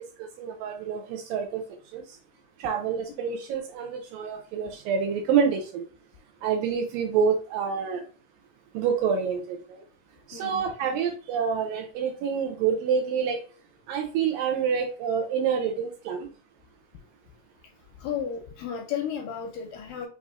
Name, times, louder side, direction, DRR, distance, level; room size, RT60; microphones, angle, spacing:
voice 1, 0.2-1.6 1.9-2.0 2.6-5.8 6.4-8.0 8.7-9.8 10.3-13.4 13.9-16.3, right 6 dB, 80° right, 4 dB, 2.1 m, -27 dB
voice 2, 10.3-10.7 18.0-20.1, left 8 dB, 85° left, 2 dB, 2.0 m, -33 dB
6.0 x 2.7 x 2.4 m, 0.38 s
omnidirectional pair, 4.3 m